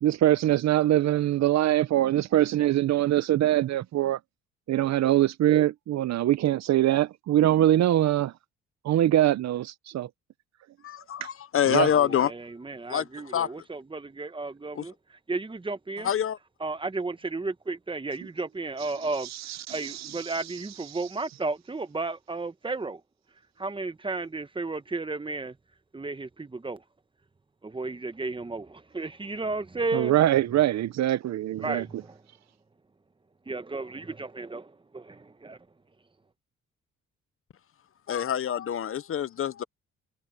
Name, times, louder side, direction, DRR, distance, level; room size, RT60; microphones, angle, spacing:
voice 1, 0.0-4.2 4.7-8.3 8.8-10.1 11.7-11.9 29.9-31.8, right 13 dB, 65° right, 0.7 m, -23 dB
voice 2, 10.8-12.3 12.9-13.0 13.3-13.5 14.8-14.9 16.0-16.4 38.1-39.6, left 9 dB, 45° left, 0.7 m, -26 dB
voice 3, 11.9-16.1 16.6-23.0 23.6-25.6 25.9-26.8 27.6-30.2 31.6-32.2 33.5-35.6, right 3 dB, 15° right, 1.1 m, -33 dB
cardioid pair, 90°, 30 cm